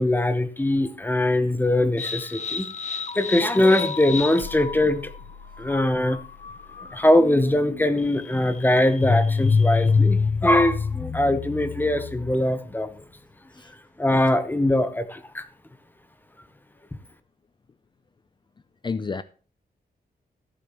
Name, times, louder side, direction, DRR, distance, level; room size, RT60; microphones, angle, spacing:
voice 1, 0.0-2.7 3.1-5.1 5.6-6.2 6.9-13.0 14.0-15.4, left 1 dB, 10° left, 1.0 m, -22 dB
sound 1, 2.0-12.6, left 5 dB, 45° left, 0.9 m, -27 dB
voice 2, 18.8-19.2, left 4 dB, 30° left, 0.5 m, -30 dB
14.0 x 8.6 x 3.0 m
wide cardioid pair, 145°, 17 cm